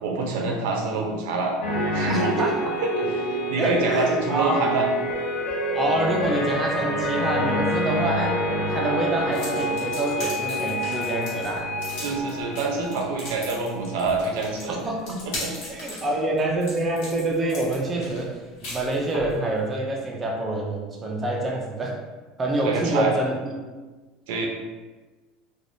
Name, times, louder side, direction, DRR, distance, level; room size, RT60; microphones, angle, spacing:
voice 1, 0.0-1.6 1.9-2.5 2.8-4.9 12.0-14.8 15.1-15.5 22.6-23.1 24.3-24.5, right 3 dB, 80° right, 1 dB, 0.6 m, -26 dB
sound 1, 1.6-14.9 15.2-15.4, equal, 85° left, 0.7 m, -28 dB
voice 2, 2.1-2.8 3.6-4.6 5.7-8.4 8.7-11.7 14.7-15.1 15.7-18.4 18.7-22.0 22.4-23.6, right 2 dB, 15° right, -1 dB, 0.3 m, -26 dB
sound 2, 9.3-19.4, left 2 dB, 70° left, 1.3 m, -38 dB
3.2 x 2.2 x 2.6 m, 1.3 s
cardioid pair, 165°, 0 cm